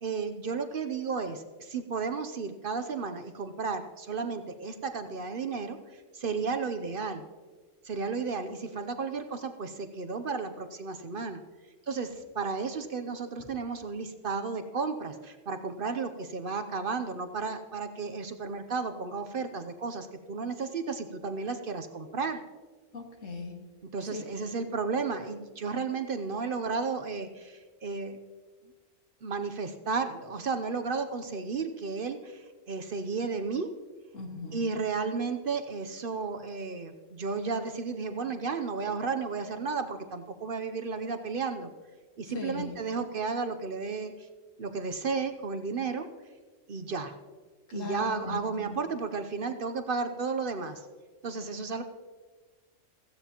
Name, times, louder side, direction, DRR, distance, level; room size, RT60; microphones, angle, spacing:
voice 1, 0.0-7.2 7.8-11.4 11.9-22.4 23.8-28.2 29.2-33.7 34.5-41.7 42.2-44.3 44.6-46.1 46.7-47.1 47.7-50.9 51.2-51.8, right 4 dB, 50° right, 8 dB, 0.8 m, -33 dB
voice 2, 22.9-23.6 24.1-24.2 34.1-34.6 42.3-42.8 47.7-48.8, left 4 dB, 85° left, 2 dB, 2.1 m, -39 dB
16.0 x 15.0 x 2.9 m, 1.4 s
omnidirectional pair, 1.3 m